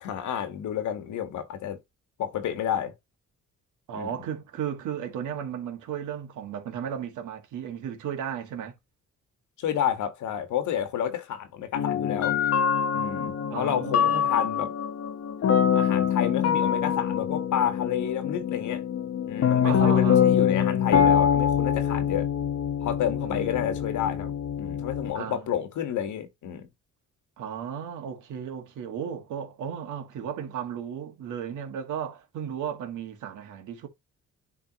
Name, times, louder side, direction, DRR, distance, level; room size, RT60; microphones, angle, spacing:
voice 1, 0.0-1.8 2.2-2.9 3.9-4.1 9.6-12.4 12.9-14.7 15.7-18.8 19.3-22.3 22.8-24.3 24.6-26.7, left 9 dB, 75° left, 1.5 m, -30 dB
voice 2, 3.9-8.7 13.5-14.3 19.6-20.3 23.2-23.7 25.1-25.5 27.4-33.9, right 8 dB, 80° right, 1.8 m, -35 dB
sound 1, 11.7-25.1, left 8 dB, 55° left, 1.1 m, -24 dB
10.0 x 3.7 x 2.9 m
cardioid pair, 90°, 30 cm